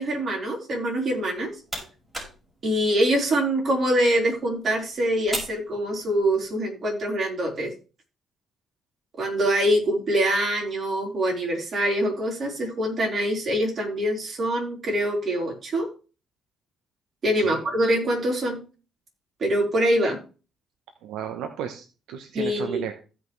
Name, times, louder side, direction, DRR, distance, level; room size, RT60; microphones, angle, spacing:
voice 1, 0.0-1.5 2.6-7.7 9.2-15.9 17.2-18.6 19.4-20.2 22.3-22.8, right 1 dB, 50° right, -1 dB, 4.2 m, -24 dB
sound 1, 1.2-6.5, right 1 dB, 20° right, 5.5 m, -40 dB
voice 2, 21.0-22.9, right 9 dB, 90° right, 7 dB, 1.0 m, -34 dB
15.5 x 5.7 x 3.2 m, 0.34 s
cardioid pair, 90°, 0 cm